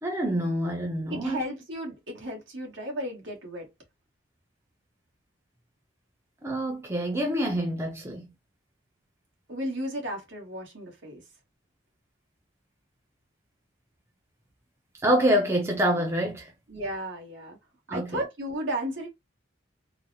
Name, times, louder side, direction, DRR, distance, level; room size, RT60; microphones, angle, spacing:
voice 1, 0.0-1.4 6.4-8.3 15.0-16.5 17.9-18.2, equal, 15° right, 0.5 m, -26 dB
voice 2, 1.1-3.7 9.5-11.2 16.7-17.6 17.9-19.1, equal, 70° right, 1.3 m, -34 dB
3.8 x 2.0 x 2.7 m
head